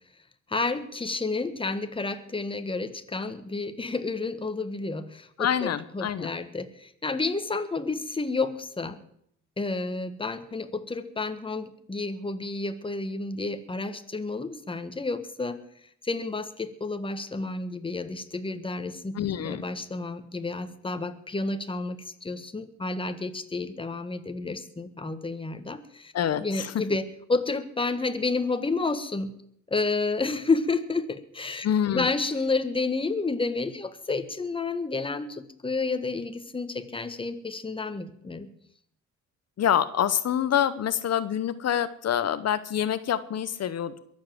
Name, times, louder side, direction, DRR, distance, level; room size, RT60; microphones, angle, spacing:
voice 1, 0.5-9.0 9.6-15.6 16.0-26.1 26.4-29.3 29.7-38.5, left 3 dB, 20° left, 9 dB, 1.5 m, -30 dB
voice 2, 5.4-6.3 19.1-19.6 26.1-26.8 31.6-32.1 39.6-44.0, left 9 dB, 60° left, 13 dB, 0.9 m, -26 dB
22.0 x 7.6 x 7.6 m, 0.71 s
cardioid pair, 105°, 29 cm